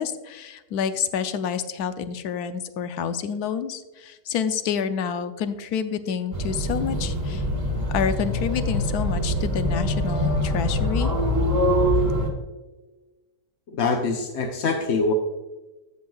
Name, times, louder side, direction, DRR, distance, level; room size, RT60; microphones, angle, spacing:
voice 1, 0.0-7.4 7.9-11.1, left 7 dB, 90° left, 10 dB, 1.2 m, -28 dB
sound 1, 6.3-12.3, equal, 25° right, 1.9 m, -24 dB
voice 2, 13.7-15.1, left 4 dB, 55° left, 3 dB, 0.8 m, -24 dB
15.5 x 5.5 x 2.3 m, 1.2 s
omnidirectional pair, 1.6 m